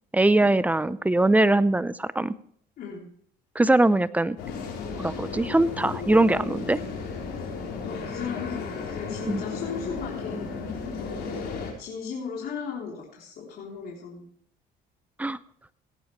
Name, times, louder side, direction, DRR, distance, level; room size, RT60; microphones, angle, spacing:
voice 1, 0.1-2.3 3.6-4.4 5.0-6.8 9.3-9.4 15.2-15.4, right 2 dB, 10° right, 16 dB, 0.5 m, -21 dB
voice 2, 2.8-3.1 7.8-10.6 11.8-14.2, left 6 dB, 60° left, -3 dB, 3.4 m, -36 dB
sound 1, 4.4-11.7, left 5 dB, 80° left, 4.3 m, -34 dB
17.0 x 10.5 x 3.2 m, 0.62 s
cardioid pair, 110°, 17 cm